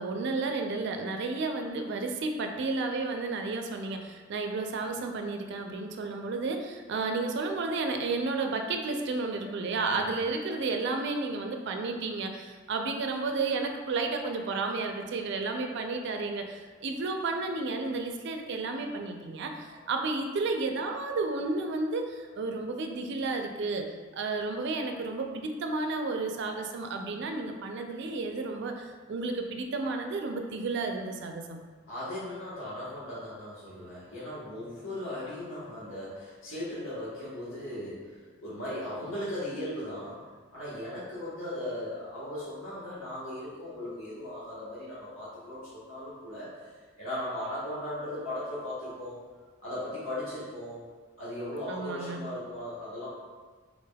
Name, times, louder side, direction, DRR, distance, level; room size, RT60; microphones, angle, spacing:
voice 1, 0.0-31.6 51.7-52.2, right 3 dB, 60° right, 4 dB, 0.4 m, -32 dB
voice 2, 31.9-40.2 40.5-49.2 49.6-50.8 51.2-53.1, left 1 dB, 80° left, -10 dB, 1.2 m, -38 dB
3.8 x 3.3 x 2.2 m, 1.4 s
head